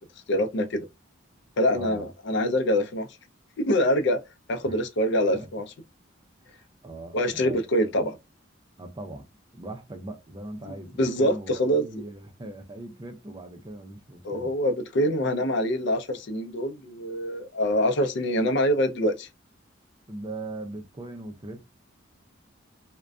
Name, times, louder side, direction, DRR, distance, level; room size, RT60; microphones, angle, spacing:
voice 1, 0.3-0.9 1.6-3.1 3.6-4.2 4.5-5.6 7.1-8.2 11.0-11.9 14.2-19.3, equal, 65° left, 0.5 m, -25 dB
voice 2, 1.7-2.1 4.6-4.8 5.3-5.5 6.4-7.9 8.8-9.3 9.5-14.5 20.1-21.7, right 2 dB, 25° right, 0.4 m, -40 dB
2.5 x 2.1 x 2.3 m
head